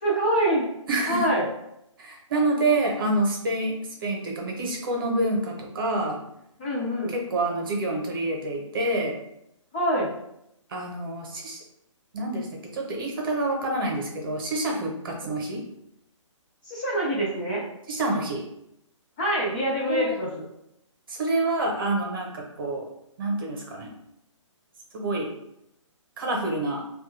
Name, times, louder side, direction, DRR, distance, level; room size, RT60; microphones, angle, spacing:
voice 1, 0.0-0.7 1.1-1.5 6.6-7.1 9.7-10.2 15.2-15.3 16.6-17.6 19.2-20.3, right 1 dB, 15° left, -5 dB, 0.4 m, -25 dB
voice 2, 0.9-1.3 2.0-6.2 7.1-9.2 10.7-11.6 12.1-15.6 17.9-18.4 19.9-20.2 21.1-22.9 23.2-23.9 24.9-25.3 26.2-26.8, right 2 dB, 45° right, 1 dB, 0.8 m, -27 dB
3.0 x 2.3 x 3.1 m, 0.81 s
hypercardioid pair, 165°, 16 cm